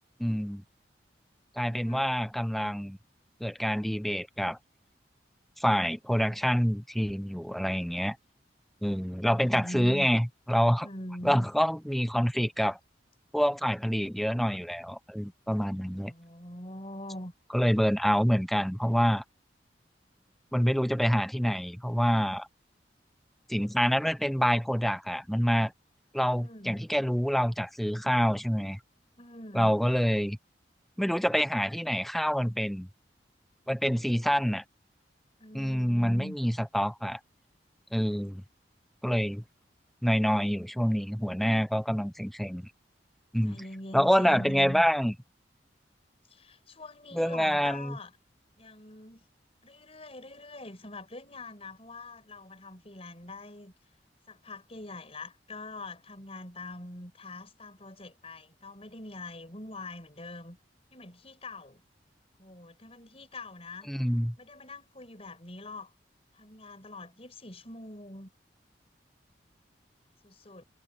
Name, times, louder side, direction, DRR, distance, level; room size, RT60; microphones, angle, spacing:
voice 1, 0.2-0.6 1.6-3.0 3.4-4.6 5.6-8.2 8.8-10.9 11.2-12.8 13.3-16.1 17.5-19.2 20.5-22.5 23.5-25.7 26.1-28.8 29.5-30.4 31.0-32.9 33.7-34.6 35.5-37.2 37.9-38.4 39.0-39.4 40.0-42.7 43.3-43.6 43.9-45.1 47.1-48.0 63.9-64.3, equal, ahead, 0.9 m, -27 dB
voice 2, 1.6-2.1 9.2-10.1 10.8-11.5 15.7-17.3 26.3-26.8 29.2-29.8 35.4-36.4 43.4-44.8 46.3-48.1 48.6-49.3 49.6-53.7 54.3-60.6 60.9-61.8 62.4-63.9 64.4-65.9 66.3-68.3 70.2-70.6, left 1 dB, 35° left, 6.3 m, -43 dB
head